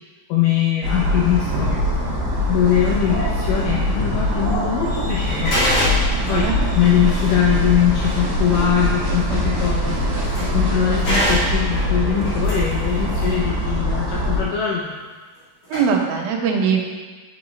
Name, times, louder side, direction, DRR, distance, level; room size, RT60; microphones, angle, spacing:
voice 1, 0.3-1.8 2.5-5.6 6.3-6.5 6.8-10.0 10.4-14.9, left 9 dB, 75° left, -3 dB, 2.2 m, -21 dB
sound 1, 0.8-14.4, left 1 dB, 60° right, 3.0 m, -22 dB
sound 2, 1.5-1.7 2.7-2.9 3.6-3.7 4.2-4.5 4.8-4.9 5.2-10.6 10.9-13.4 15.4-15.5 15.6-15.8, equal, 55° left, 3.5 m, -27 dB
voice 2, 6.2-6.6 15.7-16.8, right 6 dB, 85° right, 1 dB, 2.7 m, -21 dB
10.0 x 4.8 x 3.2 m, 1.4 s
omnidirectional pair, 4.1 m